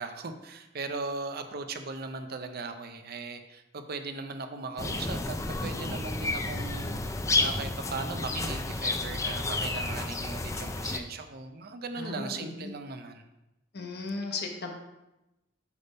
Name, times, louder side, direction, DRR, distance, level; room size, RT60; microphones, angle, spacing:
voice 1, 0.0-13.2, right 3 dB, 55° right, 8 dB, 0.6 m, -38 dB
sound 1, 4.8-11.0, left 2 dB, 15° left, 0.4 m, -31 dB
voice 2, 12.0-12.7 13.7-14.7, left 3 dB, 60° left, 3 dB, 1.0 m, -36 dB
8.2 x 3.5 x 5.4 m, 0.96 s
head